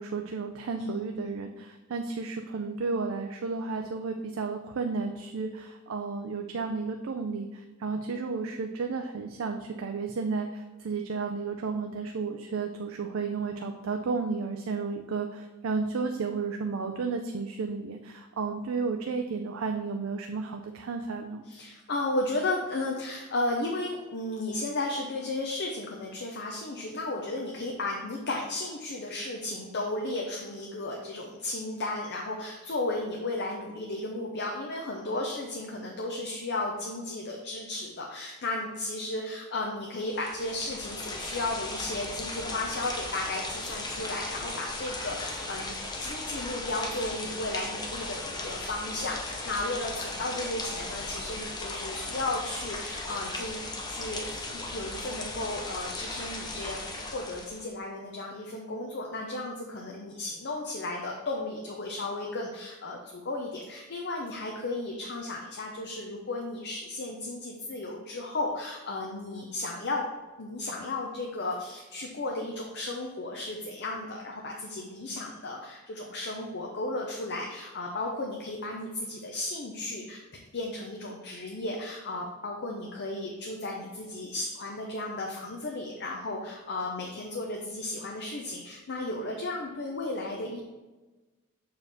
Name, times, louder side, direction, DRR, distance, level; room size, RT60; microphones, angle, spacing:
voice 1, 0.0-21.4, right 4 dB, 75° right, 4 dB, 0.4 m, -32 dB
voice 2, 0.8-1.3 21.5-53.6 53.9-70.1 70.4-80.2 80.5-90.6, left 2 dB, 55° left, 0 dB, 0.7 m, -34 dB
sound 1, 40.0-57.7, left 2 dB, 20° left, 0.7 m, -37 dB
6.6 x 4.5 x 3.4 m, 1.2 s
head